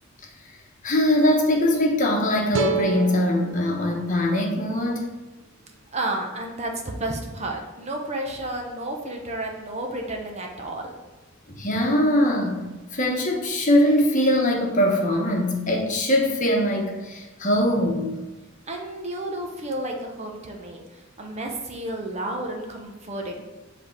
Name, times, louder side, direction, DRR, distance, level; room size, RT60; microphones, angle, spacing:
voice 1, 0.8-5.1 11.5-12.6 12.9-18.2, left 1 dB, 40° left, 1 dB, 1.1 m, -22 dB
sound 1, 2.5-5.7, right 5 dB, 65° right, 0.6 m, -32 dB
voice 2, 5.9-10.9 18.7-23.5, right 1 dB, 35° right, 2 dB, 0.9 m, -31 dB
7.9 x 3.6 x 4.5 m, 1.2 s
head